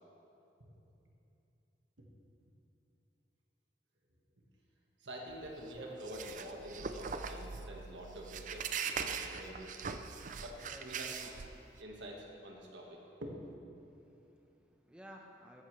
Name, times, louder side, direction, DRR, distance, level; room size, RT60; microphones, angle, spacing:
voice 1, 5.0-9.7 10.4-11.4 11.8-13.4, right 1 dB, 85° right, -1 dB, 1.7 m, -47 dB
sound 1, 5.3-11.8, right 6 dB, 45° right, 0.5 m, -41 dB
sound 2, 5.8-9.1, left 1 dB, 30° right, 1.0 m, -54 dB
voice 2, 10.1-10.8 13.8-15.6, equal, 5° right, 0 dB, 1.0 m, -57 dB
14.5 x 11.5 x 3.3 m, 2.8 s
head